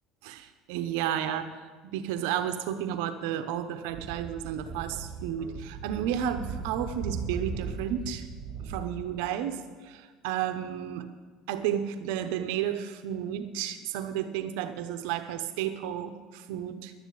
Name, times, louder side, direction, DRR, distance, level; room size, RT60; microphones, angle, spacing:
voice 1, 0.2-8.3 8.6-11.1 11.5-16.9, right 10 dB, 80° right, 9 dB, 0.8 m, -32 dB
Speech / Wind, 3.9-8.8, right 6 dB, 35° right, 3.2 m, -38 dB
11.5 x 9.3 x 8.5 m, 1.5 s
supercardioid pair, 115°, 0 cm